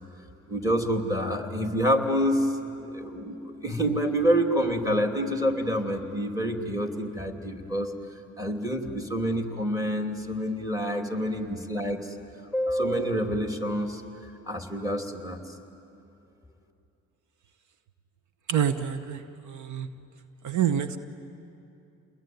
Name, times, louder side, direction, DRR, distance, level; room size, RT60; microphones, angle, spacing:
voice 1, 0.5-7.9 8.4-12.1 12.5-14.0 14.5-15.4, equal, 10° right, 4 dB, 2.8 m, -27 dB
voice 2, 18.5-19.9 20.4-21.0, right 9 dB, 75° right, 10 dB, 1.0 m, -27 dB
29.0 x 21.5 x 9.4 m, 2.8 s
cardioid pair, 90°, 30 cm